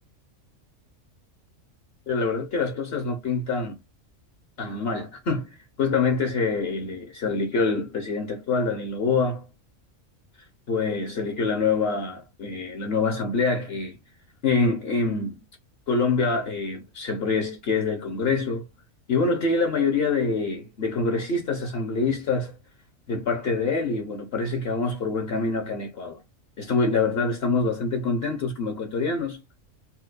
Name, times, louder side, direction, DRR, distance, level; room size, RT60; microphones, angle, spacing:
voice 1, 2.1-3.8 4.6-9.4 10.7-14.0 14.4-15.4 15.9-18.7 19.1-22.6 23.1-26.2 26.6-29.4, left 4 dB, 55° left, 1.0 m, -25 dB
4.4 x 2.1 x 2.4 m
omnidirectional pair, 1.4 m